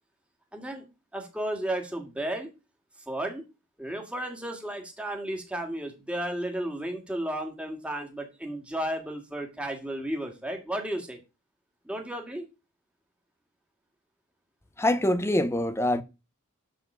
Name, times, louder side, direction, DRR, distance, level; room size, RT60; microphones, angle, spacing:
voice 1, 0.5-0.9 1.1-2.5 3.1-3.4 3.8-11.2 11.8-12.5, right 1 dB, 5° right, 2.0 m, -33 dB
voice 2, 14.8-16.0, left 1 dB, 10° left, 0.7 m, -24 dB
12.0 x 4.2 x 6.7 m
head